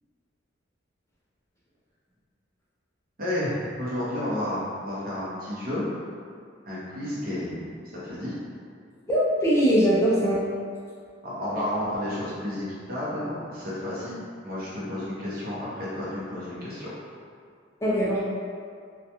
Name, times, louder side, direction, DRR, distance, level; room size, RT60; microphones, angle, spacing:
voice 1, 3.2-5.8 6.6-8.3 11.2-14.1 14.4-16.9, left 1 dB, 50° right, -8 dB, 0.7 m, -31 dB
voice 2, 9.1-10.5 17.8-18.2, equal, 15° left, -8 dB, 0.4 m, -21 dB
2.4 x 2.2 x 2.8 m, 2.2 s
head